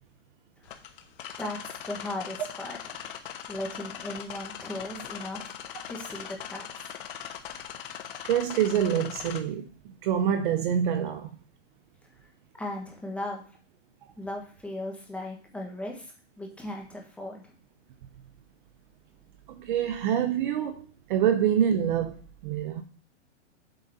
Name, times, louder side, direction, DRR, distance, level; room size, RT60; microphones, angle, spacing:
sound 1, 0.6-9.4, left 10 dB, 45° left, 1.1 m, -40 dB
voice 1, 1.4-2.8 3.5-5.5 5.9-6.9 12.6-13.4 14.2-17.5, left 1 dB, 5° left, 1.4 m, -37 dB
voice 2, 8.2-11.4 19.5-22.2 22.4-22.8, right 9 dB, 40° right, 0.8 m, -26 dB
7.8 x 3.9 x 5.4 m
hypercardioid pair, 150°, 37 cm